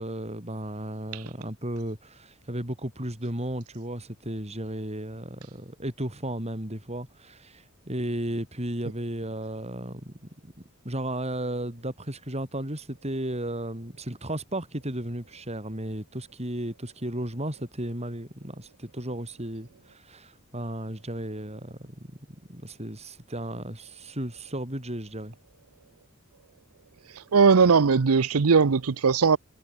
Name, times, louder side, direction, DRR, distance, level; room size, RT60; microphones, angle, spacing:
voice 1, 0.0-10.1 10.4-10.5 10.8-22.1 22.5-25.3, right 1 dB, 30° right, 7.0 m, -34 dB
voice 2, 27.1-29.4, right 5 dB, 80° right, 0.7 m, -19 dB
head